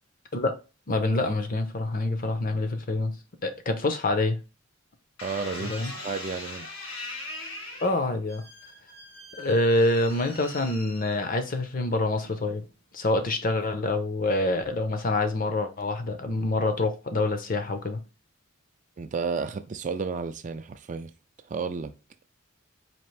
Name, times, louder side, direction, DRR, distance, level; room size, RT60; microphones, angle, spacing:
voice 1, 0.9-3.2 3.4-4.4 5.7-5.9 7.8-8.4 9.4-12.6 12.9-18.0, left 2 dB, 40° left, 0.6 m, -26 dB
sound 1, 5.2-11.6 12.2-12.7, left 2 dB, 80° left, 2.5 m, -41 dB
voice 2, 5.2-6.7 19.0-21.1 21.5-21.9, right 5 dB, 35° right, 0.4 m, -32 dB
4.3 x 2.9 x 3.2 m
head